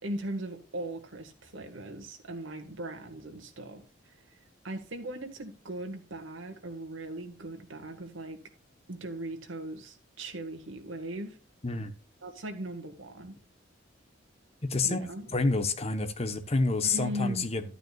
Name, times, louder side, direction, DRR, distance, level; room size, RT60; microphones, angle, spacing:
voice 1, 0.0-3.8 4.6-8.4 8.9-11.4 12.2-13.4 14.8-15.3 16.8-17.5, right 1 dB, 80° right, 1.8 m, -38 dB
voice 2, 14.6-15.0 15.3-17.6, left 3 dB, 30° left, 1.0 m, -28 dB
12.0 x 9.2 x 2.4 m
head